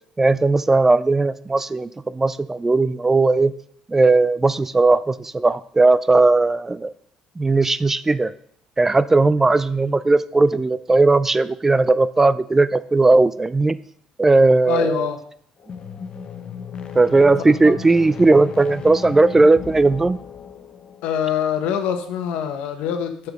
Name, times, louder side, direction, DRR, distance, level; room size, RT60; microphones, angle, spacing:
voice 1, 0.2-3.5 3.9-6.9 7.4-8.3 8.8-13.8 14.2-15.1 17.0-20.2, right 3 dB, 15° right, 16 dB, 0.3 m, -17 dB
voice 2, 14.7-15.2 17.5-17.7 21.0-23.3, left 9 dB, 85° left, 7 dB, 1.1 m, -24 dB
sound 1, 15.6-21.2, left 6 dB, 50° left, 0.8 m, -35 dB
6.6 x 5.9 x 5.1 m, 0.62 s
cardioid pair, 100°, 2 cm